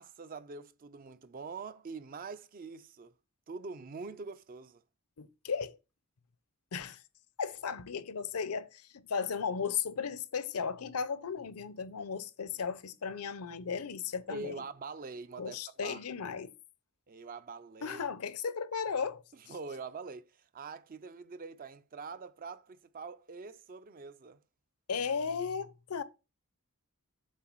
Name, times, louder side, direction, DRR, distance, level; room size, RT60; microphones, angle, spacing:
voice 1, 0.0-3.1 3.5-4.8 14.3-16.0 17.1-18.0 19.4-24.4, right 4 dB, 40° right, 0.4 m, -44 dB
voice 2, 5.2-5.8 6.7-7.0 7.4-14.6 15.4-16.5 17.8-19.2 24.9-26.0, left 6 dB, 85° left, 0.7 m, -35 dB
7.6 x 3.8 x 4.5 m
head